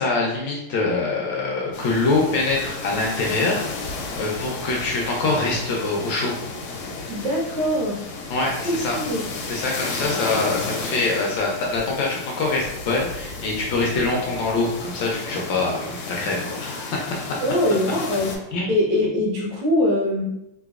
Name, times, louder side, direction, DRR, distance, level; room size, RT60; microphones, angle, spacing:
voice 1, 0.0-6.3 8.3-9.0 9.5-17.3 18.5-18.7, left 3 dB, 70° left, -2 dB, 1.2 m, -24 dB
sound 1, 1.7-18.4, left 3 dB, 90° left, 1.5 m, -33 dB
voice 2, 7.1-8.1 8.6-9.2 17.4-18.3 18.7-20.3, left 1 dB, 70° right, -3 dB, 1.4 m, -22 dB
3.3 x 2.9 x 2.4 m, 0.87 s
omnidirectional pair, 2.4 m